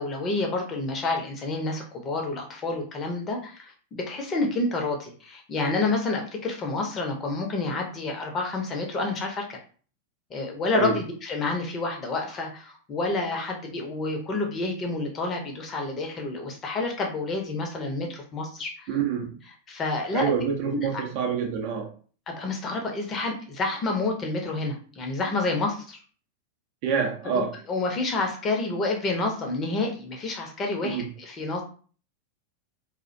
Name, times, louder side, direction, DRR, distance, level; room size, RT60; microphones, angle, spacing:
voice 1, 0.0-9.6 10.3-18.9 19.7-20.3 22.3-26.0 27.3-31.6, left 3 dB, 25° left, 2 dB, 0.6 m, -29 dB
voice 2, 18.9-19.3 20.1-21.9 26.8-27.5 30.8-31.1, right 6 dB, 45° right, 3 dB, 0.5 m, -27 dB
2.4 x 2.1 x 2.5 m, 0.41 s
figure-of-eight pair, 90°, 0 cm